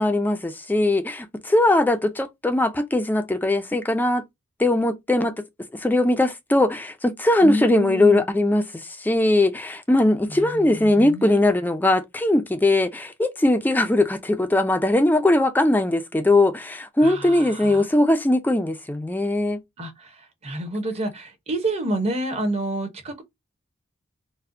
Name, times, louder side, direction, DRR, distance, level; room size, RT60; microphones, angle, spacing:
voice 1, 0.0-4.2 4.6-5.3 5.7-19.6, left 1 dB, 10° left, 0.3 m, -20 dB
voice 2, 7.4-8.2 10.3-11.5 17.0-17.9 19.8-23.2, right 1 dB, 30° right, 0.8 m, -29 dB
4.2 x 2.1 x 2.6 m
head